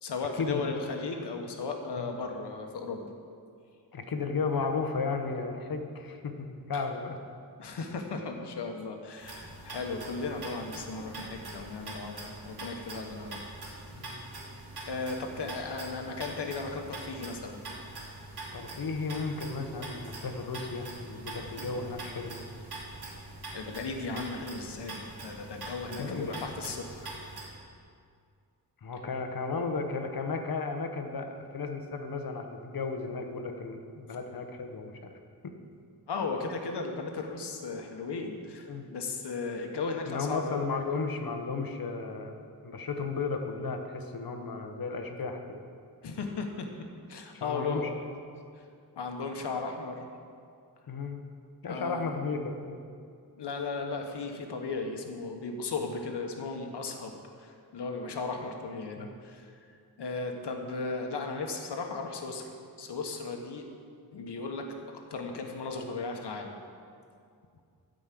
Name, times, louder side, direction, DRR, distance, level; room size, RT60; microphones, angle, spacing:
voice 1, 0.0-3.1 6.7-6.8 7.6-13.4 14.9-17.6 23.5-27.1 36.1-40.6 46.0-46.7 47.1-47.9 49.0-50.1 51.7-52.0 53.4-59.5 60.0-63.7 64.1-64.7 65.1-66.6, left 4 dB, 85° left, 3 dB, 1.3 m, -36 dB
voice 2, 3.9-7.2 14.0-14.2 18.5-22.4 26.0-26.5 28.8-35.1 35.4-35.5 38.7-38.9 40.0-45.6 47.3-47.9 50.9-51.2 51.6-52.7 59.0-59.1, left 4 dB, 60° left, 5 dB, 1.1 m, -34 dB
sound 1, 9.2-27.4, right 2 dB, 70° right, 2.8 m, -43 dB
12.5 x 5.3 x 7.6 m, 2.3 s
wide cardioid pair, 120°, 40 cm